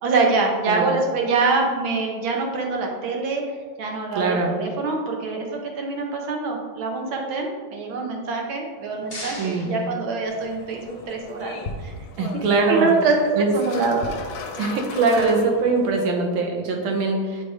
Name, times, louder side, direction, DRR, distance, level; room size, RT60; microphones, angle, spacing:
voice 1, 0.0-3.4 3.8-11.9 12.7-14.1, right 3 dB, 75° right, 1 dB, 1.7 m, -24 dB
voice 2, 4.1-4.6 9.4-9.9 12.2-12.9 13.3-13.5 14.6-17.4, right 3 dB, 90° right, 1 dB, 1.7 m, -22 dB
sound 1, 8.6-10.8, left 1 dB, 25° left, 0.6 m, -40 dB
sound 2, 10.3-16.0, left 4 dB, 80° left, 1.4 m, -36 dB
7.4 x 2.9 x 4.8 m, 1.5 s
omnidirectional pair, 2.3 m